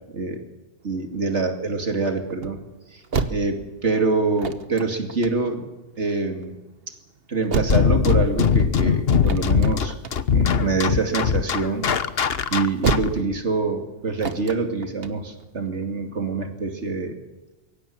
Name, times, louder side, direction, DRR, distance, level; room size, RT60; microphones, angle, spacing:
voice 1, 0.1-0.4 0.8-2.7 2.9-3.0 3.3-6.6 7.3-10.0 10.3-11.9 12.5-17.2, right 4 dB, 85° right, 5 dB, 2.8 m, -25 dB
sound 1, 0.8-16.3, right 5 dB, 60° right, 1.5 m, -33 dB
sound 2, 7.7-13.2, left 7 dB, 60° left, 1.2 m, -21 dB
22.5 x 17.0 x 8.6 m, 1.1 s
omnidirectional pair, 1.1 m